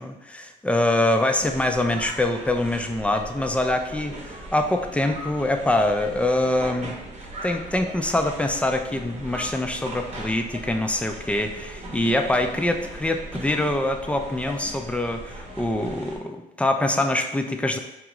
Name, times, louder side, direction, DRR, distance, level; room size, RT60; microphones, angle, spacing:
voice 1, 0.0-6.9 7.4-17.8, left 1 dB, 5° left, 5 dB, 0.3 m, -24 dB
sound 1, 1.4-16.2, right 1 dB, 35° right, 0.9 m, -39 dB
4.8 x 2.4 x 2.9 m, 0.96 s
cardioid pair, 90°, 20 cm